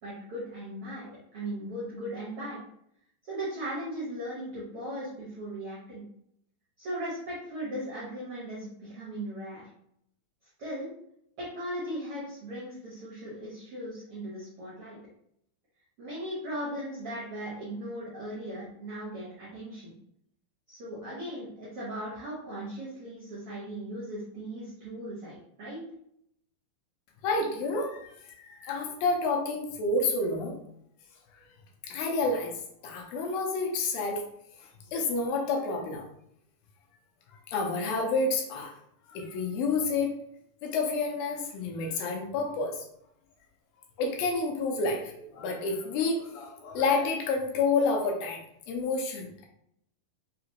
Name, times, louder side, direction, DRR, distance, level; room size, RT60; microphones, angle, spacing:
voice 1, 0.0-1.1 1.3-2.6 3.3-6.0 6.8-9.7 10.6-10.9 11.4-15.0 16.0-19.9 20.7-25.8, right 1 dB, 80° right, -7 dB, 1.2 m, -38 dB
voice 2, 27.2-28.1 28.4-30.6 31.8-32.5 32.8-34.2 34.9-36.0 37.5-38.7 39.1-40.1 40.6-42.8 44.0-48.4 48.7-49.5, left 3 dB, 80° left, 0 dB, 2.4 m, -29 dB
5.9 x 2.5 x 2.9 m, 0.73 s
omnidirectional pair, 4.3 m